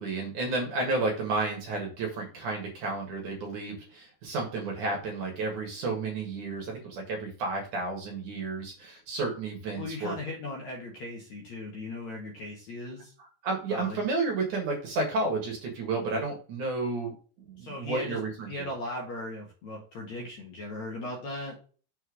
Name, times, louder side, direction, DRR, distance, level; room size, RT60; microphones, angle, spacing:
voice 1, 0.0-10.1 13.4-18.7, right 3 dB, 55° right, 1 dB, 2.7 m, -32 dB
voice 2, 9.7-13.1 13.7-14.0 17.6-18.2 18.5-21.5, left 2 dB, 55° left, -1 dB, 2.3 m, -38 dB
6.9 x 4.5 x 4.8 m, 0.39 s
omnidirectional pair, 4.9 m